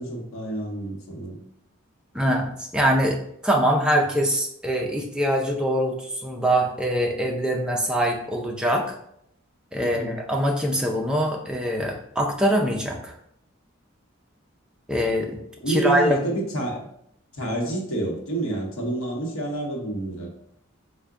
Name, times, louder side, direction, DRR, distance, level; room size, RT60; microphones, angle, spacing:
voice 1, 0.0-1.4 9.8-10.2 15.6-16.8 17.3-20.3, right 2 dB, 85° left, -1 dB, 0.9 m, -28 dB
voice 2, 2.1-9.0 9.7-13.1 14.9-15.4 15.7-16.2, equal, 5° right, 0 dB, 0.4 m, -23 dB
3.7 x 2.2 x 3.4 m, 0.71 s
head